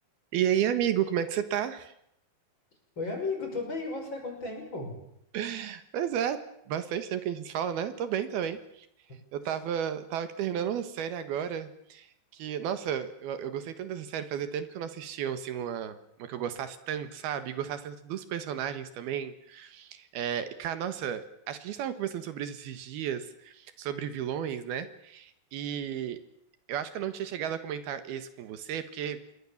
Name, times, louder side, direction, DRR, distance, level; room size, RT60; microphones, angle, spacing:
voice 1, 0.3-1.9 5.3-6.4 6.7-8.9 9.3-26.2 26.7-29.3, right 9 dB, 75° right, 11 dB, 3.3 m, -33 dB
voice 2, 3.0-5.0, left 3 dB, 30° left, 3 dB, 6.5 m, -34 dB
27.5 x 22.0 x 7.2 m, 0.75 s
omnidirectional pair, 4.5 m